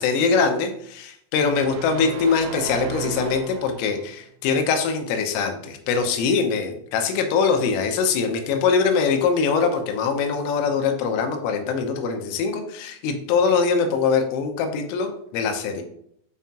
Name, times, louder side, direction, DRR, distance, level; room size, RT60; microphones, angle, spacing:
voice 1, 0.0-15.8, left 5 dB, 80° left, 6 dB, 3.4 m, -23 dB
sound 1, 1.4-4.1, right 5 dB, 80° right, 2.9 m, -34 dB
7.2 x 5.6 x 2.8 m, 0.69 s
omnidirectional pair, 5.9 m